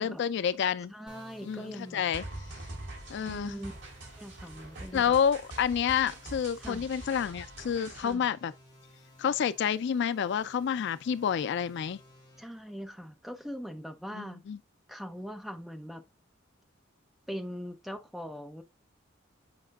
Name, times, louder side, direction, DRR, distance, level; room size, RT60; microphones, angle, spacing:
voice 1, 0.0-0.9 1.5-2.2 3.1-3.5 4.9-8.5 9.2-12.0 14.2-14.6, left 8 dB, 60° left, 0.3 m, -29 dB
voice 2, 0.9-2.0 3.2-3.7 4.2-5.2 6.6-6.8 8.0-8.3 12.4-14.4 14.9-16.0 17.3-18.6, equal, ahead, 0.7 m, -41 dB
sound 1, 1.1-12.4, left 1 dB, 20° left, 3.3 m, -57 dB
sound 2, 2.1-8.1, right 2 dB, 65° right, 3.4 m, -44 dB
7.7 x 5.2 x 2.4 m
head